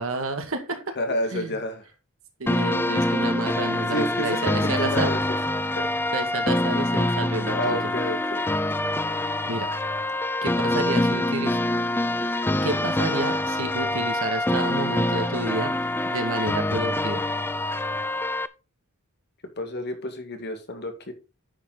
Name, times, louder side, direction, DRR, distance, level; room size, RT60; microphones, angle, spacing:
voice 1, 0.0-0.8 1.1-1.6 2.4-5.1 6.1-7.9 9.4-9.7 10.4-11.6 12.6-15.7 16.1-17.2, right 2 dB, 65° right, 6 dB, 2.0 m, -30 dB
voice 2, 1.0-1.8 3.9-5.4 5.7-6.0 7.5-8.5 19.6-21.1, left 1 dB, 50° left, 6 dB, 2.1 m, -30 dB
sound 1, 2.5-18.5, left 1 dB, 10° left, 0.4 m, -25 dB
10.0 x 6.9 x 3.9 m, 0.29 s
head